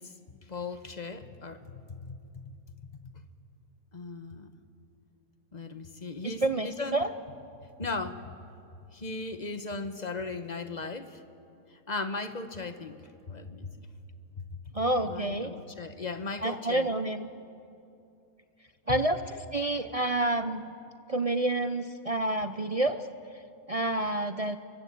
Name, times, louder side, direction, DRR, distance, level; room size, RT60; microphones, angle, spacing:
voice 1, 0.0-2.5 2.8-3.2 3.9-4.5 5.5-7.0 7.8-8.3 8.9-11.2 11.7-13.0 13.3-13.7 14.4-14.6 15.0-16.9 18.9-19.0, left 3 dB, 30° left, 9 dB, 1.3 m, -37 dB
voice 2, 6.2-7.1 14.7-15.5 16.4-17.3 18.9-19.2 19.5-20.7 21.1-23.0 23.7-24.6, right 2 dB, 45° right, 9 dB, 0.4 m, -28 dB
29.5 x 23.5 x 8.5 m, 2.6 s
omnidirectional pair, 1.7 m